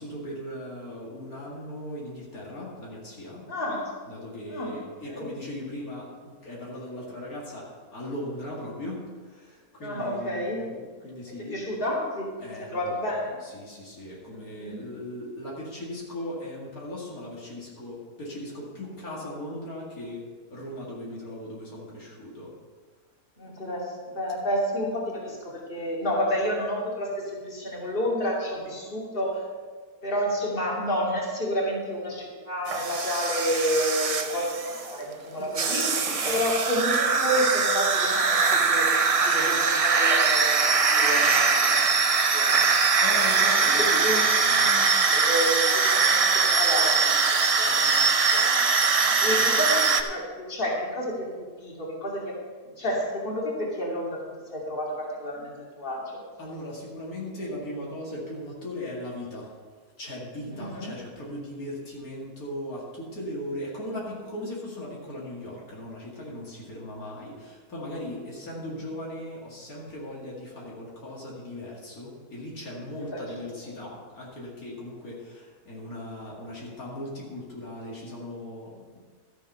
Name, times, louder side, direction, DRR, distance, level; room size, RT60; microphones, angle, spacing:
voice 1, 0.0-3.4 4.0-11.6 12.4-12.9 13.4-22.5 23.4-23.5 35.3-35.5 36.1-36.4 43.0-44.9 49.0-49.5 56.4-59.6 60.0-79.0, left 1 dB, 75° left, -5 dB, 2.6 m, -38 dB
voice 2, 3.5-3.9 4.5-4.7 5.0-5.3 9.8-10.6 11.4-12.3 12.6-13.4 14.3-14.8 23.4-29.4 30.0-40.6 40.9-41.8 42.2-42.6 42.9-43.0 43.5-47.2 47.6-48.7 49.2-52.4 52.6-54.2 54.5-56.2 60.5-61.0 73.1-73.5, equal, 35° left, -4 dB, 2.7 m, -30 dB
sound 1, 32.7-35.0 35.5-50.0, right 4 dB, 55° right, 0.4 m, -22 dB
13.5 x 7.1 x 5.5 m, 1.5 s
omnidirectional pair, 1.6 m